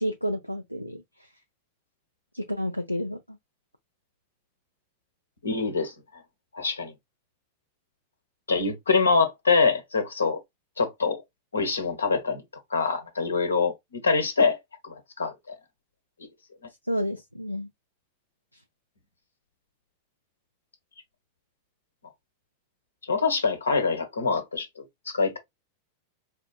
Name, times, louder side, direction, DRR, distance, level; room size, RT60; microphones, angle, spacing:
voice 1, 0.0-1.3 2.3-3.4 16.8-17.7 18.5-18.6, equal, 90° left, 0.3 m, -31 dB
voice 2, 5.4-5.9 6.5-6.9 8.5-10.4 10.8-11.2 11.5-12.4 12.7-15.5 23.1-25.4, left 4 dB, 75° left, 0.9 m, -25 dB
4.2 x 2.5 x 2.4 m
figure-of-eight pair, 90°, 0 cm